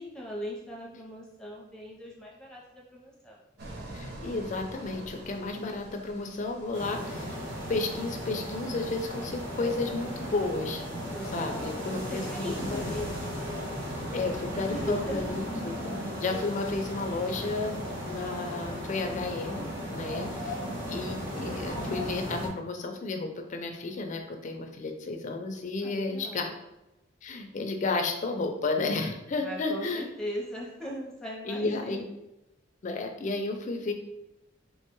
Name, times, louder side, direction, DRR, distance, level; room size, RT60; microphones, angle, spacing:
voice 1, 0.0-3.4 11.0-13.1 14.7-15.4 20.0-20.6 25.8-26.6 29.3-32.1, equal, 5° left, -4 dB, 0.7 m, -39 dB
sound 1, 3.6-15.3, right 1 dB, 55° right, 0.6 m, -47 dB
voice 2, 3.9-7.3 7.7-10.9 11.3-12.9 14.1-15.9 16.2-17.8 18.1-20.3 20.8-26.5 27.2-30.1 31.5-32.0 32.8-33.9, left 3 dB, 40° left, 4 dB, 0.4 m, -32 dB
sound 2, 6.7-22.5, equal, 75° right, 0.9 m, -36 dB
3.1 x 2.2 x 3.0 m, 0.92 s
head